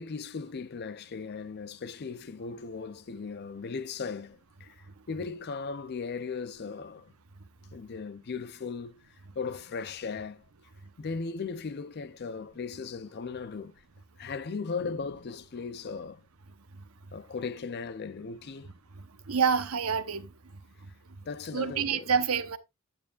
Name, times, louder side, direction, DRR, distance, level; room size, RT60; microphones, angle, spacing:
voice 1, 0.0-7.1 7.7-10.4 11.0-13.8 14.2-16.2 17.1-18.7 21.3-22.1, left 5 dB, 50° left, 0.5 m, -37 dB
voice 2, 19.0-20.3 21.5-22.6, right 6 dB, 75° right, 0.9 m, -28 dB
9.3 x 9.0 x 2.4 m
head